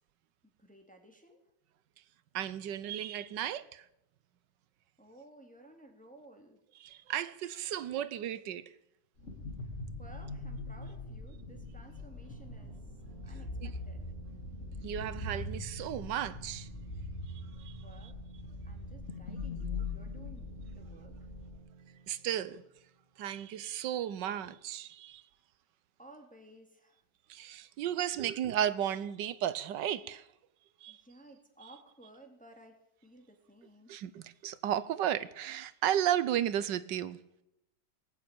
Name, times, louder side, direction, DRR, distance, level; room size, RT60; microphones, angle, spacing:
voice 1, 0.4-1.4 5.0-6.6 9.6-12.8 13.2-14.0 17.8-18.2 18.7-21.2 26.0-27.0 30.9-33.9, right 1 dB, 5° left, 2.1 m, -56 dB
voice 2, 2.3-3.9 6.8-8.7 13.6-13.7 14.8-16.7 17.6-17.8 22.1-22.6 23.2-25.2 27.3-30.3 30.8-31.0 33.9-37.2, right 10 dB, 80° right, 1.4 m, -34 dB
sound 1, 9.2-21.6, left 3 dB, 40° left, 2.3 m, -42 dB
sound 2, 11.9-23.4, right 7 dB, 55° right, 2.4 m, -54 dB
19.0 x 8.5 x 8.8 m
omnidirectional pair, 1.9 m